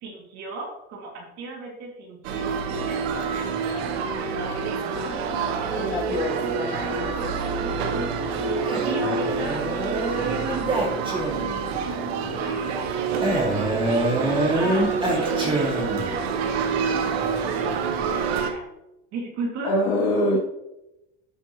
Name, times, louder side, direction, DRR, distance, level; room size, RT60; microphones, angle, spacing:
voice 1, 0.0-5.8 8.8-9.6 10.1-11.3 12.2-18.6 19.1-19.7, right 2 dB, 55° right, -1 dB, 2.7 m, -37 dB
sound 1, 2.2-18.5, right 5 dB, 85° right, 1.2 m, -27 dB
voice 2, 5.7-7.2 19.6-20.4, left 1 dB, 60° left, -5 dB, 3.2 m, -25 dB
Male speech man speaking, 8.6-11.7 13.2-16.2, right 1 dB, 15° right, 2.6 m, -26 dB
13.5 x 5.7 x 3.2 m, 0.92 s
supercardioid pair, 115°, 31 cm